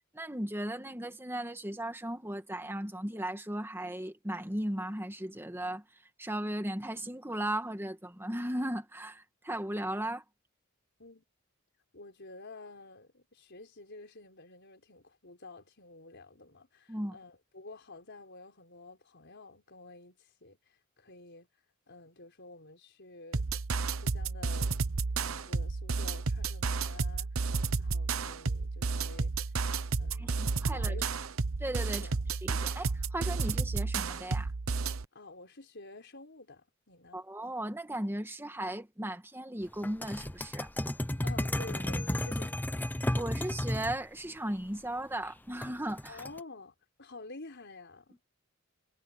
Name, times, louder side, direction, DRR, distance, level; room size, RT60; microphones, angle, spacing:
voice 1, 0.0-5.8 6.2-10.2 16.9-17.2 30.1-31.0 31.6-32.1 32.4-34.5 37.1-40.7 43.1-46.2, right 1 dB, 10° right, 2.1 m, -36 dB
voice 2, 11.9-21.5 21.9-23.4 24.0-24.8 25.2-29.3 30.0-31.2 32.0-32.2 35.1-37.3 41.2-42.9 46.1-48.2, left 3 dB, 55° left, 5.3 m, -50 dB
sound 1, 23.3-35.0, right 4 dB, 80° right, 1.0 m, -32 dB
sound 2, 39.8-44.0 45.6-46.4, left 1 dB, 10° left, 0.6 m, -33 dB
head